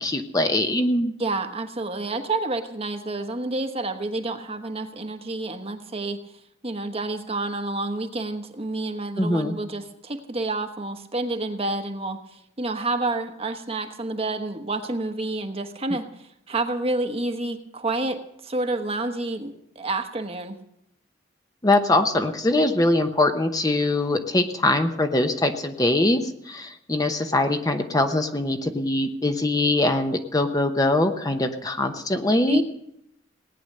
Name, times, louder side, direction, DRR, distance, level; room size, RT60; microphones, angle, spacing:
voice 1, 0.0-1.1 9.2-9.5 21.6-26.2 26.5-32.6, left 2 dB, 20° left, 6 dB, 0.9 m, -22 dB
voice 2, 1.2-6.2 6.6-20.6 32.5-32.6, right 2 dB, 30° right, 7 dB, 1.2 m, -29 dB
18.0 x 9.8 x 6.6 m, 0.78 s
head